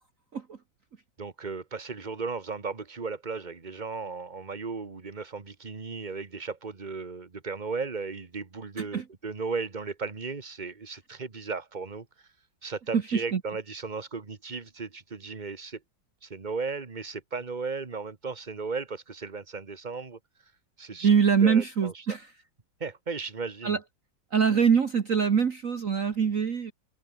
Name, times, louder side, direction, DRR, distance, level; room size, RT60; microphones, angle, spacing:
voice 1, 1.2-12.1 12.6-15.8 16.2-20.2 20.8-21.1 21.4-22.2 22.8-23.8, right 4 dB, 25° right, 1.6 m, -35 dB
voice 2, 12.9-13.4 21.0-22.3 23.6-23.8 24.3-26.7, right 6 dB, 45° right, 1.6 m, -24 dB
omnidirectional pair, 2.1 m